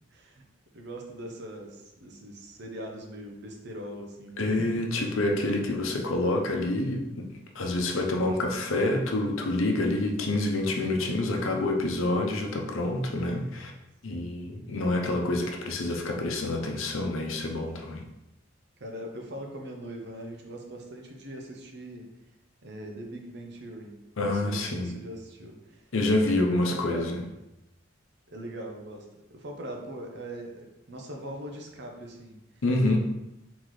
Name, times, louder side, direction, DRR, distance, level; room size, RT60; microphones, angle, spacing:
voice 1, 0.1-0.4 0.7-4.7 14.1-14.3 18.8-22.1 22.6-23.9 24.3-25.8 26.2-27.1 28.3-32.4 32.9-33.0, right 1 dB, 55° right, 1 dB, 0.8 m, -41 dB
voice 2, 4.4-7.3 7.5-13.7 14.0-18.0 24.2-24.9 25.9-27.2 32.6-33.0, left 2 dB, 85° left, 2 dB, 0.7 m, -27 dB
4.0 x 3.9 x 3.2 m, 0.92 s
head